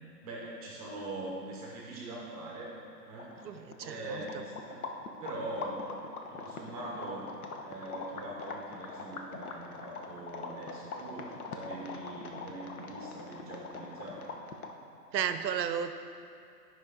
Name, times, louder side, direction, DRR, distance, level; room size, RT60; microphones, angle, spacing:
voice 1, 0.2-2.8 3.0-3.5 3.8-4.9 5.2-5.8 6.3-7.2 7.6-14.4, right 2 dB, 20° right, -3 dB, 0.9 m, -42 dB
sound 1, 2.9-3.0 3.1-14.9, left 4 dB, 60° left, 0.9 m, -43 dB
voice 2, 3.4-4.2 15.1-15.9, right 8 dB, 85° right, 10 dB, 0.7 m, -33 dB
9.1 x 5.6 x 3.7 m, 2.4 s
hypercardioid pair, 160°, 49 cm